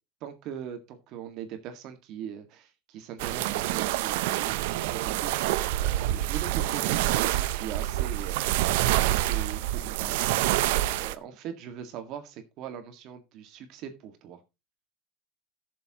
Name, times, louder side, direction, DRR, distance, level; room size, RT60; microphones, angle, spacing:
voice 1, 0.2-10.7 11.0-14.4, right 9 dB, 55° right, 7 dB, 1.8 m, -41 dB
sound 1, 3.2-11.2, right 15 dB, 85° right, 0.6 m, -27 dB
17.0 x 7.1 x 2.9 m, 0.25 s
cardioid pair, 145°, 0 cm